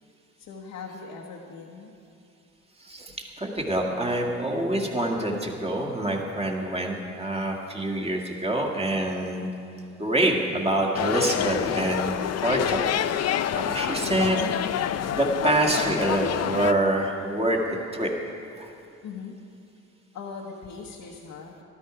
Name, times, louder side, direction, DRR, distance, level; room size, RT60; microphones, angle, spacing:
voice 1, 0.4-1.9 19.0-19.4 20.1-21.6, left 5 dB, 85° left, -2 dB, 1.3 m, -40 dB
voice 2, 2.8-9.5 10.0-12.9 13.5-14.4 15.1-18.1 18.6-18.7, right 1 dB, 20° right, 0 dB, 1.9 m, -26 dB
sound 1, 11.0-16.7, left 10 dB, 55° left, 0.5 m, -27 dB
13.5 x 13.0 x 5.0 m, 2.6 s
cardioid pair, 90°, 30 cm